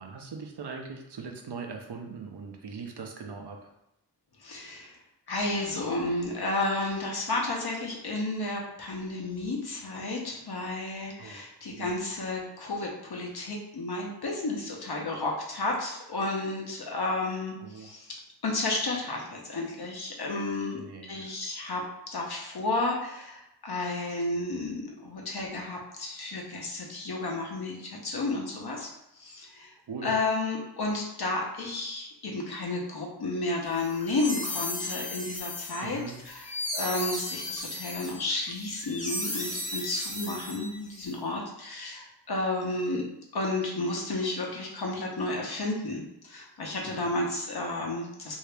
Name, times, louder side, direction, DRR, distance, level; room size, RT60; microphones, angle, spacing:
voice 1, 0.0-3.7 11.2-11.4 11.7-12.0 17.6-17.9 20.7-21.3 29.9-30.1 35.8-36.2 40.1-40.2, right 5 dB, 70° right, 2 dB, 0.7 m, -40 dB
voice 2, 4.4-5.0 5.3-18.2 18.4-20.8 21.1-21.8 22.1-28.9 29.2-29.8 30.0-36.0 36.3-43.0 43.3-48.4, left 2 dB, 65° left, -1 dB, 0.9 m, -32 dB
sound 1, 33.8-41.0, left 1 dB, 20° left, 0.7 m, -35 dB
2.8 x 2.8 x 3.3 m, 0.86 s
cardioid pair, 50°, 41 cm